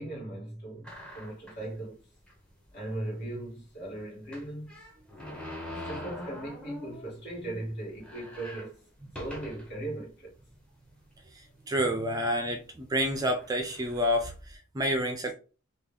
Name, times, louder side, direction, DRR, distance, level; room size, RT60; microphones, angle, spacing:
voice 1, 0.0-2.1 2.7-4.8 5.6-8.8 9.2-10.3, right 1 dB, 50° left, 1.7 m, -38 dB
sound 1, 0.8-1.7 2.3-2.4 2.6-2.7 4.3-7.2 7.6-7.7 7.9-9.8 10.4-10.5 11.4-11.7 12.5-12.6 13.0-14.5, left 1 dB, 5° left, 0.8 m, -44 dB
voice 2, 11.7-15.3, equal, 15° right, 0.4 m, -29 dB
3.4 x 2.4 x 3.4 m
head